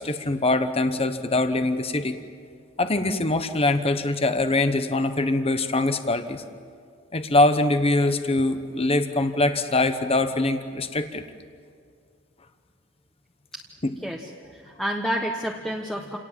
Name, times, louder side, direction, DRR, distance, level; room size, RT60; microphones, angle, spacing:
voice 1, 0.0-2.2 2.8-6.4 7.1-11.2 13.8-13.9, left 2 dB, 30° left, 9 dB, 1.1 m, -23 dB
voice 2, 14.0-16.2, equal, 5° left, -1 dB, 1.3 m, -30 dB
28.5 x 18.5 x 7.5 m, 2.1 s
head